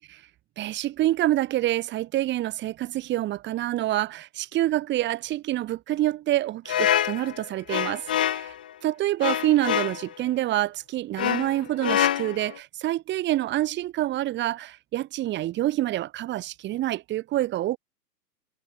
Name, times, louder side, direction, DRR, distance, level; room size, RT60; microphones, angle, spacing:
voice 1, 0.6-8.5 8.8-17.8, right 14 dB, 20° right, 2.9 m, -27 dB
sound 1, 6.7-8.6 9.2-10.1 11.2-12.6, left 10 dB, 5° left, 0.4 m, -26 dB
figure-of-eight pair, 120°, 50 cm